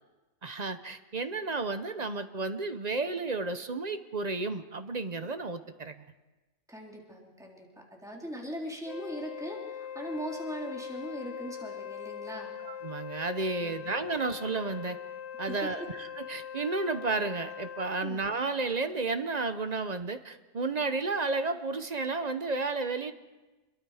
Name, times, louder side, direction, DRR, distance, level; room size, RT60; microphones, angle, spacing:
voice 1, 0.4-5.9 12.6-15.0 15.4-23.1, right 3 dB, 35° right, 9 dB, 0.8 m, -32 dB
voice 2, 6.7-12.5 13.6-14.1 15.5-15.7 18.0-18.2, equal, ahead, -1 dB, 3.4 m, -40 dB
Wind instrument woodwind instrument, 8.8-18.0, left 9 dB, 65° left, 1.4 m, -41 dB
27.0 x 22.0 x 4.9 m, 1.1 s
omnidirectional pair, 1.5 m